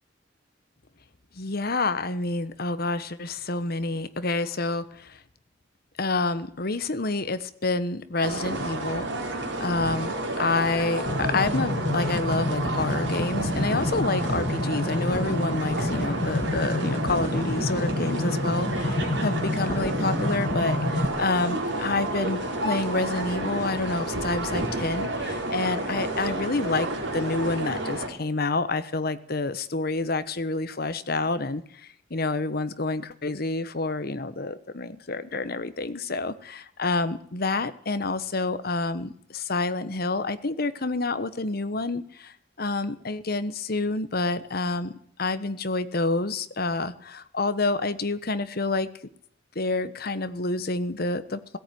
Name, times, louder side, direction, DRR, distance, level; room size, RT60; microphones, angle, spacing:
voice 1, 1.3-5.2 6.0-44.9 45.2-48.9 49.5-51.6, left 3 dB, 55° left, 13 dB, 1.2 m, -28 dB
sound 1, 8.2-28.1, right 2 dB, 75° right, 4.3 m, -30 dB
sound 2, 11.1-21.1, left 2 dB, 35° left, 1.6 m, -28 dB
17.0 x 16.5 x 9.4 m, 0.65 s
head